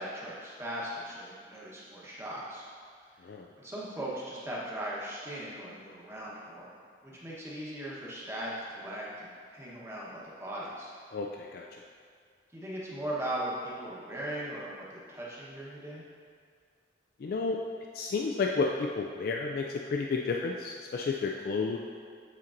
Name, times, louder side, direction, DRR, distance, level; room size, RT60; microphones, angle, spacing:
voice 1, 0.0-2.7 3.0-3.3 3.6-6.7 7.0-10.9 12.5-16.0, right 1 dB, 15° right, -6 dB, 1.0 m, -39 dB
voice 2, 11.1-11.6 17.2-17.6 17.9-21.8, left 4 dB, 55° left, 1 dB, 0.3 m, -31 dB
8.5 x 4.5 x 2.5 m, 2.1 s
head